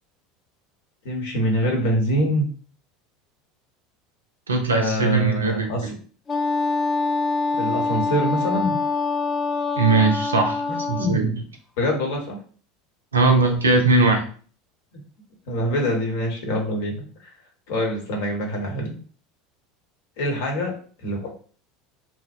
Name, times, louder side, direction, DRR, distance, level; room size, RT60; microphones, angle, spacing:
voice 1, 1.0-2.5 4.7-5.9 7.6-8.8 10.7-11.5 11.8-12.4 14.9-15.0 15.5-17.3 17.7-18.9 20.2-20.7 21.0-21.3, equal, 65° left, 1 dB, 0.8 m, -25 dB
voice 2, 4.5-5.9 9.8-10.6 10.9-11.3 13.1-14.3, right 3 dB, 85° right, 4 dB, 0.4 m, -19 dB
Wind instrument woodwind instrument, 6.3-11.2, left 4 dB, 30° left, 0.6 m, -24 dB
2.6 x 2.0 x 2.4 m, 0.42 s
figure-of-eight pair, 75°, 0 cm